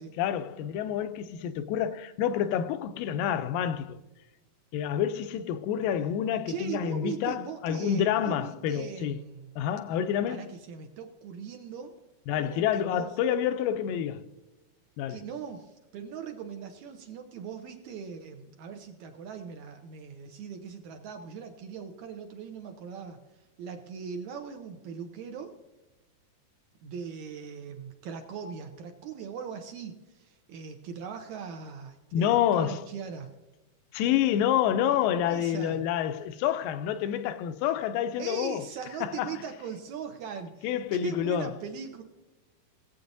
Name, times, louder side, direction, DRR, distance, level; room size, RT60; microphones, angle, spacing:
voice 1, 0.2-4.0 4.7-9.2 9.6-10.6 12.3-14.3 15.0-15.2 32.1-32.8 33.9-38.7 39.0-39.4 40.6-41.5, left 9 dB, 85° left, 2.2 m, -28 dB
voice 2, 6.5-9.5 10.3-12.0 12.4-13.1 15.1-23.2 23.6-25.6 26.8-33.3 35.2-35.8 38.2-42.0, right 6 dB, 75° right, 1.8 m, -40 dB
18.0 x 8.4 x 2.6 m
omnidirectional pair, 4.0 m